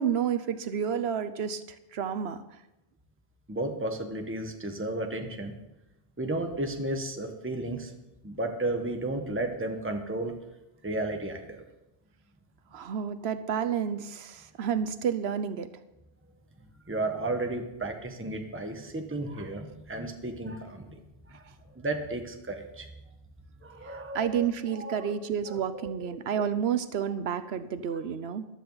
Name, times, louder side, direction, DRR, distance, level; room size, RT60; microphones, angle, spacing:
voice 1, 0.0-1.6 1.9-2.4 12.7-15.7 23.9-28.5, right 8 dB, 85° right, 12 dB, 1.0 m, -30 dB
voice 2, 3.5-5.5 6.2-7.9 8.2-10.3 10.8-11.6 16.9-21.0 21.3-21.4 21.7-22.9 23.6-25.1 25.5-25.9, right 2 dB, 10° right, 4 dB, 1.2 m, -33 dB
14.5 x 12.0 x 4.0 m, 0.93 s
omnidirectional pair, 1.1 m